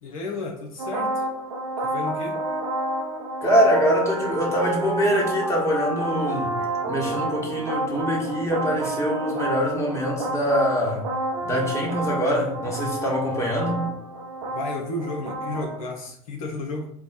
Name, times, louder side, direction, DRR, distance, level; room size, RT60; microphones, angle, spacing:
voice 1, 0.0-1.2 1.8-2.4 14.5-16.9, left 2 dB, 70° left, 0 dB, 0.7 m, -32 dB
sound 1, 0.8-15.8, right 2 dB, 75° right, 0.6 m, -29 dB
voice 2, 3.4-6.6 6.8-11.0 11.4-13.9, equal, 15° left, -2 dB, 1.4 m, -24 dB
4.5 x 2.2 x 4.1 m, 0.73 s
figure-of-eight pair, 75°, 18 cm